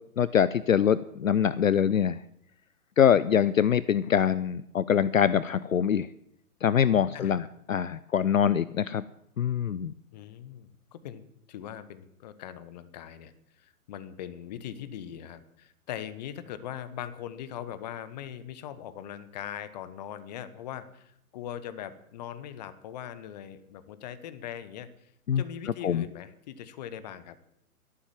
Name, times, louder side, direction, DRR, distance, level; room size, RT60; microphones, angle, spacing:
voice 1, 0.2-2.2 3.0-6.1 6.6-7.4 7.7-9.0 9.4-9.9 25.3-25.4 25.8-26.0, left 8 dB, 60° left, 17 dB, 0.6 m, -24 dB
voice 2, 7.1-7.5 10.1-27.4, left 10 dB, 30° left, 14 dB, 1.1 m, -41 dB
13.0 x 11.5 x 7.3 m, 0.76 s
figure-of-eight pair, 125°, 45 cm